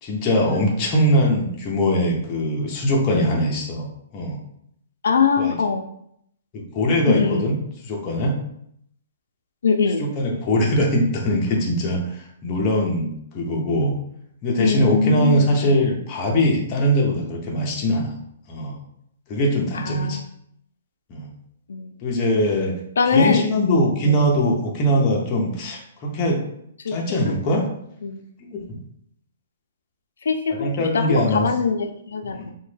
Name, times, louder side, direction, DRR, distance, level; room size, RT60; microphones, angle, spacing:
voice 1, 0.0-3.9 4.1-4.4 5.4-5.5 6.5-7.6 7.8-8.4 10.0-12.0 12.4-14.0 14.4-18.1 18.5-18.8 19.3-20.2 21.1-21.3 22.0-22.8 23.0-26.4 26.9-27.7 28.5-28.8 30.5-31.5 32.4-32.5, equal, 20° left, -2 dB, 0.4 m, -21 dB
voice 2, 5.0-5.8 7.1-7.4 9.6-10.1 14.6-15.7 19.7-20.2 21.7-21.9 23.0-23.4 24.0-24.2 26.8-27.0 28.0-28.2 30.2-32.5, left 5 dB, 85° left, 6 dB, 0.3 m, -22 dB
2.9 x 2.1 x 3.2 m, 0.72 s
hypercardioid pair, 180°, 0 cm